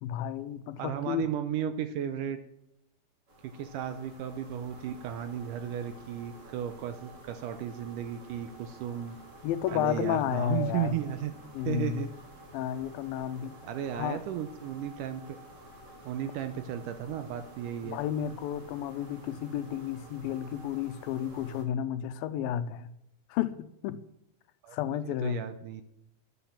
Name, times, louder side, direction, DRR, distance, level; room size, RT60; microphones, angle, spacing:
voice 1, 0.0-1.3 9.4-10.9 11.5-12.0 12.5-13.5 14.0-14.2 17.8-22.9 23.3-24.0 24.7-25.4, left 10 dB, 80° left, 13 dB, 2.3 m, -32 dB
voice 2, 0.8-2.4 3.4-9.2 9.7-11.3 11.7-12.1 13.7-15.2 16.1-18.0 24.6-24.8 25.2-25.8, right 9 dB, 75° right, 9 dB, 2.0 m, -34 dB
sound 1, 3.3-21.6, right 1 dB, 35° right, 1.3 m, -51 dB
sound 2, 9.7-12.3, right 4 dB, 60° right, 1.9 m, -49 dB
10.0 x 9.3 x 7.1 m, 0.83 s
omnidirectional pair, 4.3 m